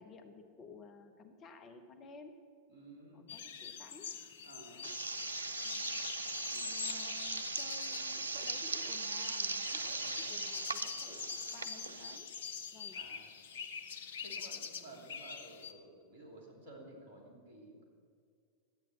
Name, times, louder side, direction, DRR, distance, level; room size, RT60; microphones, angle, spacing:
voice 1, 0.0-2.4 3.1-4.2 4.7-4.9 5.6-5.9 6.5-12.3 12.7-13.0 14.4-14.6, left 4 dB, 30° left, 6 dB, 1.0 m, -55 dB
voice 2, 2.7-3.3 4.4-4.9 9.8-10.0 12.9-13.3 14.2-17.8, right 2 dB, 55° right, -1 dB, 3.1 m, -54 dB
sound 1, 3.3-15.7, left 7 dB, 60° left, 0.6 m, -45 dB
sound 2, 4.8-12.2, right 3 dB, 80° right, 0.5 m, -39 dB
11.5 x 9.0 x 7.2 m, 2.2 s
figure-of-eight pair, 90°, 0 cm